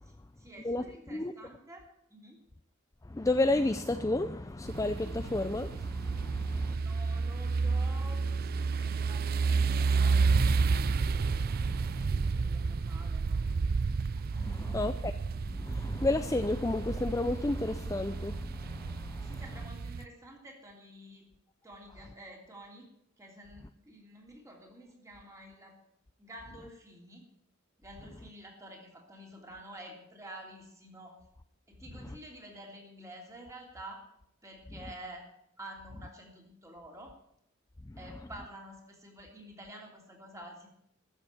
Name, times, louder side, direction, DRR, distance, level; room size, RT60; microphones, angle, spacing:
voice 1, 0.0-2.4 6.2-10.3 11.7-13.7 14.3-14.8 19.2-21.2 21.6-22.9 23.2-25.8 26.2-27.3 27.8-31.2 31.7-34.0 34.4-35.3 35.6-37.1 38.0-40.7, right 1 dB, 15° right, 3.0 m, -50 dB
voice 2, 3.0-6.8 11.1-12.1 14.3-15.1 15.5-19.3 37.9-38.0, left 2 dB, 15° left, 0.4 m, -32 dB
sound 1, 4.7-20.0, right 4 dB, 45° right, 0.4 m, -31 dB
13.5 x 7.2 x 9.0 m
head